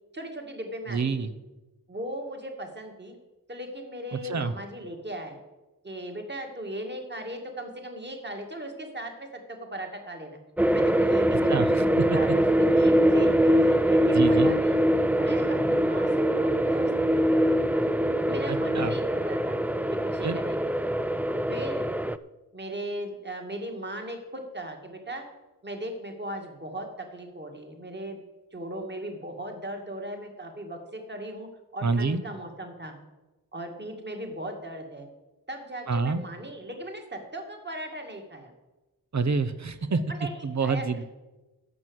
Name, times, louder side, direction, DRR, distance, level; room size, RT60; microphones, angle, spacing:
voice 1, 0.1-1.3 1.9-3.2 3.5-5.4 5.8-10.4 10.7-11.7 12.1-14.8 15.1-17.3 18.3-19.6 19.9-20.8 21.5-22.0 22.5-25.3 25.6-28.2 28.5-33.0 33.5-35.1 35.5-38.5 39.9-41.0, right 1 dB, 30° right, 3 dB, 2.2 m, -38 dB
voice 2, 0.9-1.3 4.1-4.5 11.5-12.2 14.1-14.5 18.5-18.9 20.2-20.4 31.8-32.2 35.9-36.2 39.1-40.0 40.4-41.0, right 4 dB, 50° right, 12 dB, 0.9 m, -27 dB
sound 1, 10.6-22.2, equal, 5° right, 0.4 m, -23 dB
12.5 x 6.0 x 8.1 m, 1.1 s
cardioid pair, 60°, 37 cm